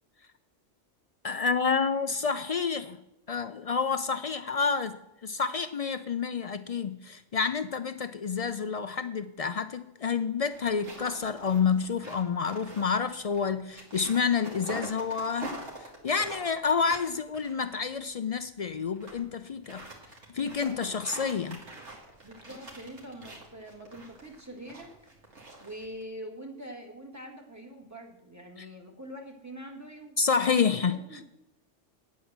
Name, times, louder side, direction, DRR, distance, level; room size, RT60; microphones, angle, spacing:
voice 1, 1.2-3.0 3.3-5.0 5.2-15.5 15.8-19.8 20.3-21.6 28.6-28.7 30.2-31.0, left 5 dB, 65° left, 12 dB, 0.3 m, -29 dB
sound 1, 10.5-18.1 18.7-19.2 19.5-26.0, right 2 dB, 65° right, 2.7 m, -45 dB
voice 2, 22.2-24.9 25.6-30.2 30.7-31.2, right 1 dB, 15° right, 3 dB, 1.9 m, -44 dB
9.6 x 8.3 x 7.3 m, 0.89 s
omnidirectional pair, 1.3 m